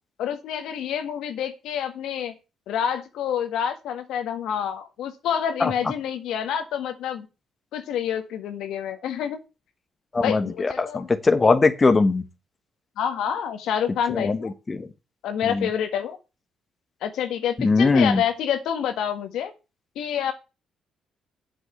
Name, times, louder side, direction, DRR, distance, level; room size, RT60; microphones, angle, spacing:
voice 1, 0.2-2.3 2.7-7.3 7.7-9.4 10.2-11.1 13.0-14.5 15.2-16.2 17.0-19.5 19.9-20.3, left 9 dB, 80° left, 1.6 m, -28 dB
voice 2, 10.1-12.2 14.1-14.9 15.4-15.7 17.6-18.2, left 3 dB, 30° left, 1.2 m, -21 dB
8.0 x 6.2 x 8.1 m
cardioid pair, 90°, 0 cm